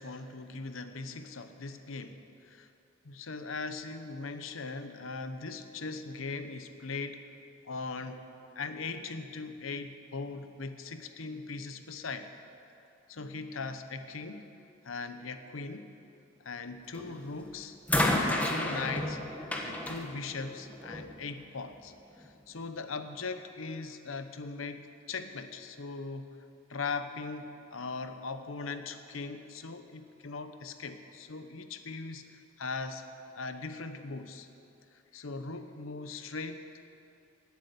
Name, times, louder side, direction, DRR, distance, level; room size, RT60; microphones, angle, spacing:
voice 1, 0.0-2.7 3.0-7.2 7.6-8.2 8.5-12.3 13.1-14.5 14.8-15.9 16.4-17.8 18.2-19.2 19.6-26.3 26.7-33.0 33.3-34.5 34.9-36.7, left 4 dB, 80° left, 9 dB, 0.9 m, -40 dB
sound 1, 16.9-17.3 17.9-21.1 22.2-22.3, left 1 dB, 10° left, 1.2 m, -31 dB
17.5 x 8.3 x 6.9 m, 2.7 s
head